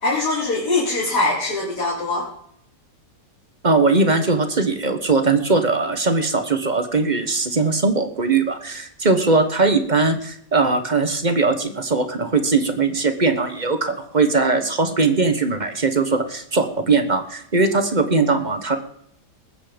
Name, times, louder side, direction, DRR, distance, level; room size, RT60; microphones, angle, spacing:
voice 1, 0.0-2.3, left 2 dB, 70° left, -6 dB, 4.3 m, -22 dB
voice 2, 3.6-18.8, right 3 dB, 30° right, 9 dB, 1.2 m, -20 dB
20.5 x 8.6 x 5.1 m, 0.67 s
omnidirectional pair, 1.8 m